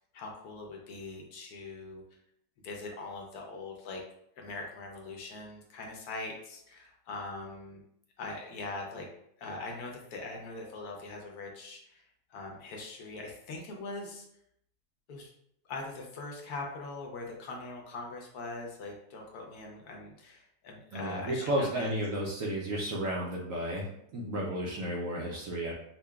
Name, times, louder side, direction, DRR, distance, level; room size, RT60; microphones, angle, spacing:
voice 1, 0.1-2.0 2.6-4.0 4.4-7.8 8.2-9.1 9.4-12.0 12.3-14.2 15.1-15.3 15.6-21.9, left 3 dB, 70° left, 0 dB, 1.1 m, -42 dB
voice 2, 20.9-23.9 24.1-25.7, right 1 dB, 65° right, -3 dB, 0.8 m, -32 dB
5.5 x 2.2 x 2.2 m, 0.74 s
omnidirectional pair, 1.9 m